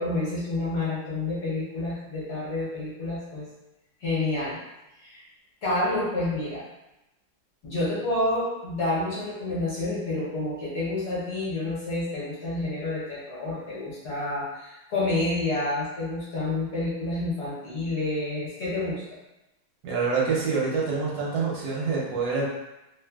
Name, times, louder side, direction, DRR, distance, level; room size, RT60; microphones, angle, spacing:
voice 1, 0.0-3.5 4.0-4.6 5.0-5.3 5.6-6.6 7.6-19.0, left 2 dB, 60° left, -7 dB, 1.2 m, -29 dB
voice 2, 19.8-22.5, right 4 dB, 70° right, -4 dB, 1.0 m, -26 dB
3.2 x 2.1 x 2.2 m, 0.94 s
omnidirectional pair, 2.2 m